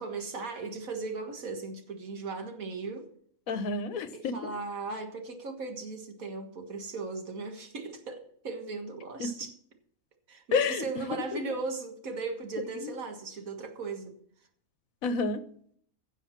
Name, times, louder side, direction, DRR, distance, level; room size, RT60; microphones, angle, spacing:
voice 1, 0.0-3.1 4.1-9.5 10.3-14.2, right 4 dB, 75° right, 5 dB, 2.1 m, -37 dB
voice 2, 3.5-4.5 9.2-9.3 10.5-10.8 11.3-11.4 12.8-12.9 15.0-15.4, left 4 dB, 75° left, 12 dB, 1.3 m, -29 dB
16.0 x 7.2 x 5.8 m, 0.63 s
omnidirectional pair, 1.5 m